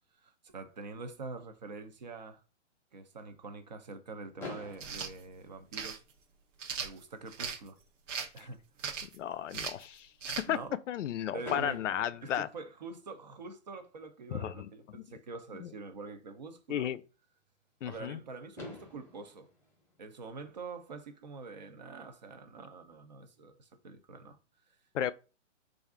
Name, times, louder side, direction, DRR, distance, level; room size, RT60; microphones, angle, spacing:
voice 1, 0.2-2.4 2.9-6.0 6.8-7.8 8.3-8.6 10.5-10.7 11.3-11.8 12.2-16.9 17.8-19.5 20.0-24.4, right 3 dB, 35° right, 0.5 m, -45 dB
Fireworks, 4.4-6.4 7.2-7.3 7.5-7.7 8.0-8.1 11.4-13.3 15.0-15.1 18.1-18.2 18.6-20.9, left 2 dB, 5° left, 0.8 m, -48 dB
sound 1, 4.7-5.1 5.7-6.0 6.6-7.6 8.1-8.4 8.8-9.2 9.5-9.8 10.2-10.5, right 6 dB, 75° right, 0.9 m, -38 dB
voice 2, 9.0-10.1 10.5-10.6 10.9-12.5 14.3-15.0 15.6-15.7 16.7-17.0 17.8-18.2 24.9-25.1, left 10 dB, 80° left, 0.5 m, -34 dB
3.3 x 2.5 x 3.5 m
hypercardioid pair, 160°, 37 cm